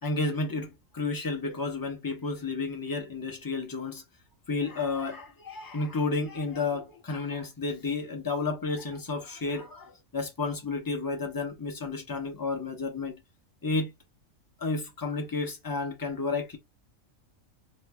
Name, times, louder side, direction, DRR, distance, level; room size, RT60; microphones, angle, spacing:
voice 1, 0.0-4.0 4.5-13.2 13.6-13.9 14.6-16.6, left 3 dB, 20° left, 0.7 m, -31 dB
3.0 x 2.5 x 3.3 m
omnidirectional pair, 1.3 m